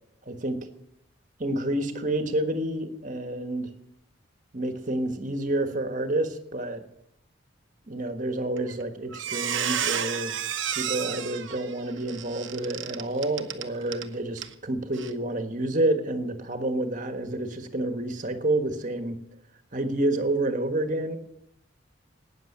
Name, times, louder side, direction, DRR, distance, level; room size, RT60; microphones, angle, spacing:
voice 1, 0.3-0.7 1.4-3.7 4.5-6.8 7.9-10.4 10.7-19.2 19.7-21.2, right 1 dB, 40° right, 7 dB, 1.4 m, -29 dB
Squeak, 8.6-8.8 9.1-14.1 14.4-14.5 14.9-15.1, right 9 dB, 65° right, 1.0 m, -31 dB
12.5 x 9.2 x 8.6 m, 0.81 s
head